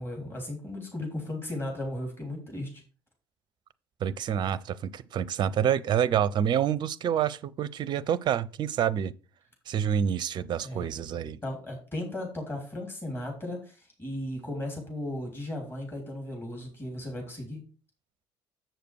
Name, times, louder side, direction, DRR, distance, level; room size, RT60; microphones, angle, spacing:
voice 1, 0.0-2.8 10.6-10.9 11.4-17.6, left 1 dB, 20° left, 3.4 m, -36 dB
voice 2, 4.0-9.1 9.7-11.4, right 9 dB, 35° right, 0.5 m, -27 dB
7.7 x 6.7 x 4.7 m
figure-of-eight pair, 60°, 12 cm